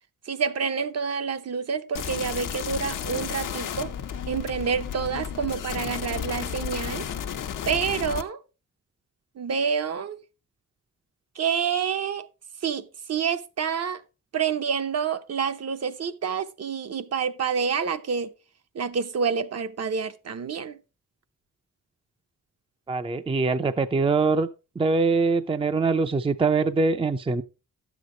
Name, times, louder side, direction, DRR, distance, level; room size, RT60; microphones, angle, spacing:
voice 1, 0.3-3.9 4.3-7.1 7.7-8.4 9.4-10.2 11.4-12.3 12.6-14.0 14.3-18.3 18.7-20.8, right 6 dB, 55° right, 0.8 m, -28 dB
sound 1, 1.9-8.2, left 8 dB, 80° left, 1.0 m, -33 dB
voice 2, 22.9-24.5 24.8-27.4, right 4 dB, 20° right, 0.5 m, -23 dB
11.5 x 8.1 x 3.8 m
wide cardioid pair, 125°, 31 cm